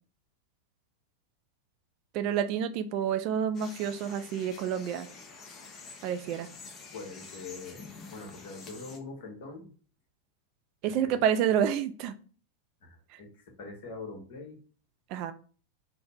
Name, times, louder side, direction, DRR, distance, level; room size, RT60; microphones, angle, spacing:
voice 1, 2.1-5.1 6.0-6.5 10.8-12.2 13.1-13.2 15.1-15.3, right 9 dB, 40° right, 10 dB, 0.3 m, -29 dB
sound 1, 3.5-9.0, left 4 dB, 25° left, 0.6 m, -48 dB
voice 2, 6.9-7.8 8.1-9.7 10.8-11.1 12.8-14.6, left 3 dB, 50° left, 1 dB, 1.1 m, -43 dB
3.1 x 2.1 x 4.0 m, 0.40 s
figure-of-eight pair, 90°, 0 cm